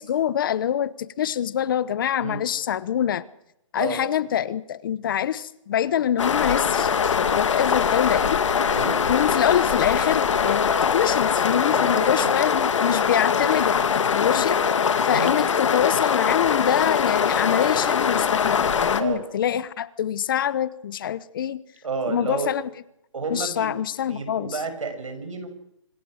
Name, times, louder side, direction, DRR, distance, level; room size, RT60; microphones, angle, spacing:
voice 1, 0.0-3.2 3.7-8.7 9.1-14.6 15.0-21.6 22.1-22.7 23.3-24.6, left 10 dB, 45° left, 18 dB, 0.9 m, -25 dB
sound 1, 6.2-19.0, left 6 dB, 70° left, 2.4 m, -22 dB
voice 2, 11.7-12.3 15.1-15.3 19.0-19.2 21.8-22.5 23.1-23.7 24.1-25.5, right 4 dB, 90° right, 8 dB, 6.5 m, -30 dB
26.0 x 19.5 x 6.5 m, 0.81 s
hypercardioid pair, 160°, 16 cm